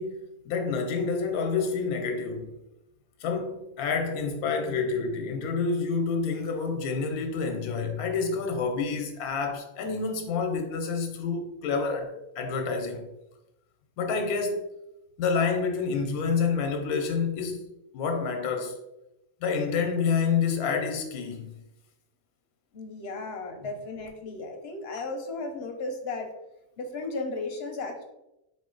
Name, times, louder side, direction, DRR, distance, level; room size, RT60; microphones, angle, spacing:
voice 1, 0.0-2.5 3.2-13.1 14.0-14.6 15.2-17.7 17.9-18.7 19.4-21.5, left 5 dB, 90° left, 1.1 m, -28 dB
voice 2, 22.7-26.3 26.8-28.0, left 3 dB, 60° left, 0.7 m, -35 dB
4.1 x 2.5 x 3.7 m
omnidirectional pair, 1.5 m